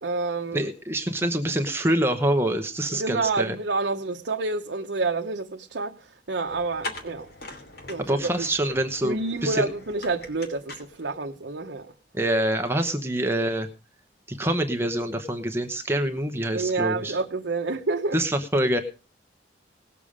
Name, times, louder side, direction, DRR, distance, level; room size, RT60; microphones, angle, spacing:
voice 1, 0.0-0.7 2.9-7.3 7.9-8.5 9.0-11.9 16.5-18.2, right 3 dB, 65° right, 0.9 m, -28 dB
voice 2, 0.5-3.5 8.0-9.7 12.1-13.7 14.3-17.2 18.1-18.8, right 1 dB, 15° right, 0.9 m, -25 dB
sound 1, 6.5-11.5, left 2 dB, 55° left, 2.8 m, -42 dB
19.0 x 7.1 x 5.0 m
head